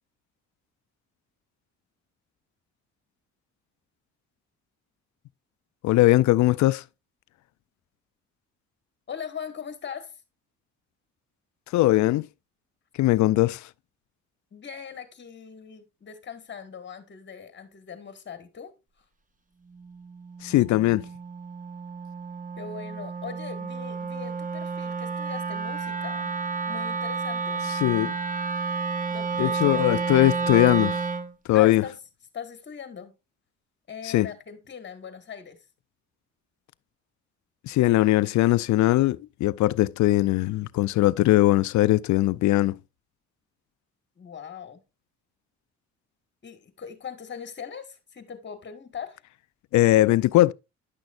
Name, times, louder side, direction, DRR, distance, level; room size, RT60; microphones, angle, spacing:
voice 1, 5.8-6.8 11.7-12.3 13.0-13.7 20.4-21.1 27.8-28.1 29.4-31.0 31.5-31.8 34.0-34.3 37.6-42.8 49.7-50.5, left 16 dB, 70° left, 0.4 m, -20 dB
voice 2, 9.1-10.1 14.5-18.7 22.6-26.3 26.7-27.7 29.1-29.8 31.5-31.9 32.3-33.1 33.9-35.6 44.2-44.8 46.4-49.2, left 7 dB, 40° left, 1.5 m, -40 dB
Wind instrument woodwind instrument, 19.7-31.3, right 4 dB, 25° right, 0.8 m, -31 dB
9.8 x 6.2 x 2.4 m
cardioid pair, 90°, 30 cm